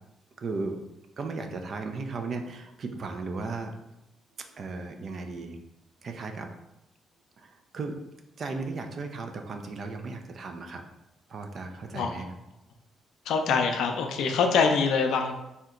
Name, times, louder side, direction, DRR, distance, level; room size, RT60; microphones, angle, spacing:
voice 1, 0.4-0.8 1.2-3.7 4.6-5.6 6.0-6.5 7.4-8.0 8.4-10.8 11.3-12.3, right 3 dB, 50° right, 5 dB, 0.4 m, -35 dB
voice 2, 13.3-15.3, left 5 dB, 80° left, 4 dB, 0.4 m, -24 dB
2.8 x 2.1 x 3.6 m, 0.90 s
cardioid pair, 90°, 0 cm